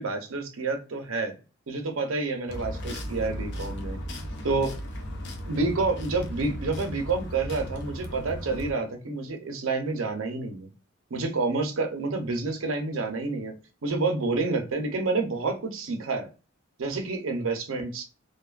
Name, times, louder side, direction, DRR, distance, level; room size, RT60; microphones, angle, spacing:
voice 1, 0.0-1.3 1.7-4.0 4.4-4.8 5.5-10.7 11.1-13.5 13.8-16.3 16.8-18.0, right 3 dB, 75° right, 5 dB, 0.6 m, -29 dB
sound 1, 2.5-8.7, equal, 55° left, 0.6 m, -36 dB
2.6 x 2.3 x 2.3 m, 0.33 s
head